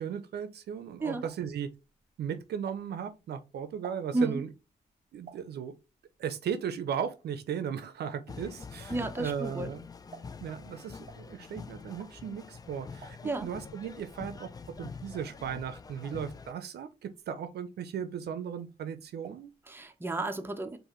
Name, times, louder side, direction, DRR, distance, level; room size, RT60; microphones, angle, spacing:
voice 1, 0.0-1.7 2.2-4.5 5.1-5.7 6.2-9.8 10.4-14.5 14.8-19.5, right 8 dB, 70° right, 0.5 m, -36 dB
sound 1, 0.8-3.2 3.6-7.5 7.8-15.1 15.4-16.0 16.5-18.2 18.5-19.6 19.8-19.9 20.2-20.3, right 5 dB, 35° right, 1.3 m, -53 dB
sound 2, 8.3-16.5, left 5 dB, 20° left, 0.3 m, -45 dB
voice 2, 8.9-9.7 13.2-13.5 19.7-20.8, right 2 dB, 15° right, 0.7 m, -32 dB
4.6 x 2.6 x 3.0 m
cardioid pair, 75°, 17 cm